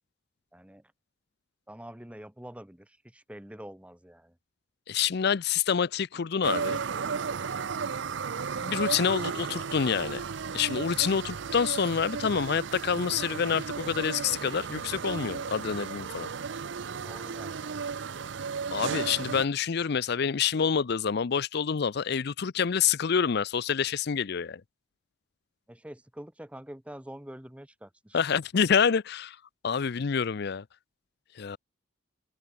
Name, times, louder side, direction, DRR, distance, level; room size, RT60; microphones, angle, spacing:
voice 1, 0.5-0.9 1.7-4.4 17.0-17.9 25.7-28.2, right 1 dB, 5° right, 0.9 m, -46 dB
voice 2, 4.9-6.8 8.5-10.2 10.5-16.3 18.7-24.6 28.1-29.4 29.6-30.6 31.4-31.6, left 7 dB, 55° left, 0.5 m, -27 dB
sound 1, 6.4-19.5, right 5 dB, 60° right, 0.5 m, -34 dB
head